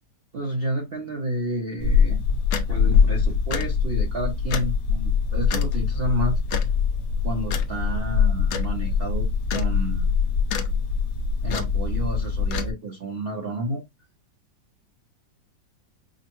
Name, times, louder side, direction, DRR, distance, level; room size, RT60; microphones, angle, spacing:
voice 1, 0.3-2.2 2.7-6.4 7.2-9.3 9.5-10.1 11.4-13.8, right 1 dB, 50° right, 0.7 m, -30 dB
sound 1, 1.8-12.7, left 6 dB, 65° left, 0.9 m, -23 dB
4.9 x 2.1 x 2.9 m
omnidirectional pair, 2.0 m